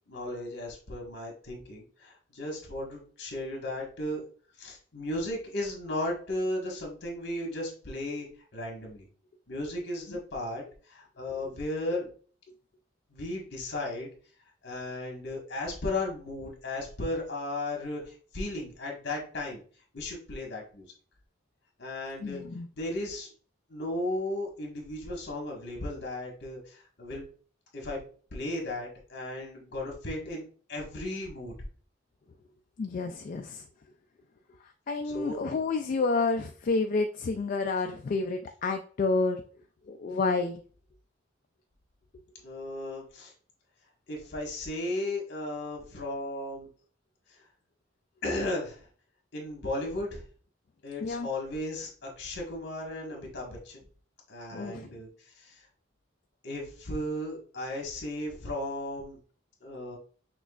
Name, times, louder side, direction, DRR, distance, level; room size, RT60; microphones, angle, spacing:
voice 1, 0.1-4.2 4.6-8.3 8.5-9.1 9.5-12.1 13.1-14.1 14.6-19.6 19.9-20.8 21.8-22.4 22.7-23.3 23.7-27.2 27.7-28.0 28.3-30.4 30.7-31.5 35.0-35.4 42.4-43.3 44.1-46.7 48.2-48.9 49.3-50.2 50.8-53.8 54.3-55.6 56.4-59.2 59.6-60.0, left 1 dB, 60° left, 0 dB, 1.5 m, -35 dB
voice 2, 22.2-22.7 32.8-33.6 34.9-39.4 39.9-40.6 51.0-51.3 54.5-54.9, left 3 dB, 45° left, 6 dB, 0.3 m, -29 dB
6.0 x 3.1 x 2.4 m, 0.43 s
head